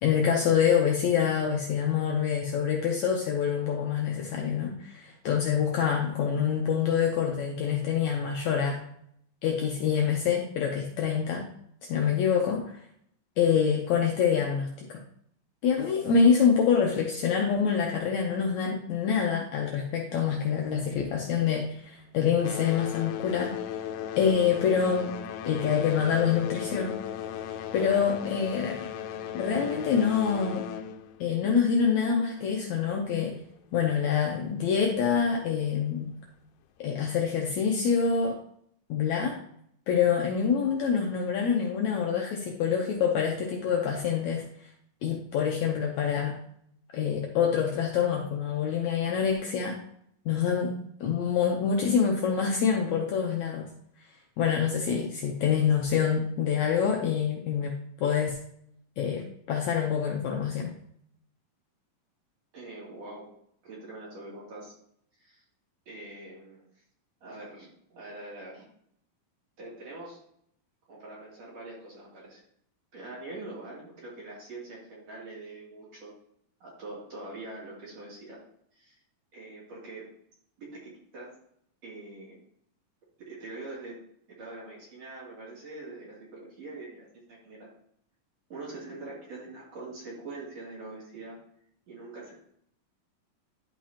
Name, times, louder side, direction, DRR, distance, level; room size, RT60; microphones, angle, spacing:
voice 1, 0.0-8.8 9.4-11.5 11.9-12.6 13.4-15.0 15.6-23.5 24.2-25.1 25.5-27.0 27.7-28.9 29.3-30.6 31.2-33.3 33.7-36.1 36.8-38.4 38.9-39.4 39.9-44.5 45.0-46.4 46.9-49.8 50.3-50.7 51.0-53.7 54.4-58.4 59.0-60.7, left 7 dB, 70° left, 0 dB, 1.9 m, -26 dB
sound 1, 20.6-21.9 22.2-32.5 33.4-33.5 34.2-34.3 34.9-35.0, left 9 dB, 85° left, 2.4 m, -37 dB
voice 2, 62.5-63.3 63.6-64.7 65.2-65.4 65.9-66.6 67.2-68.6 69.6-70.2 70.9-72.4 72.9-76.1 76.6-78.4 78.7-79.0 79.3-80.1 80.6-81.3 81.8-82.4 83.3-84.0 84.3-87.7 88.5-91.4 91.9-92.3, right 2 dB, 50° right, -6 dB, 3.9 m, -43 dB
11.5 x 5.3 x 2.9 m, 0.70 s
omnidirectional pair, 4.0 m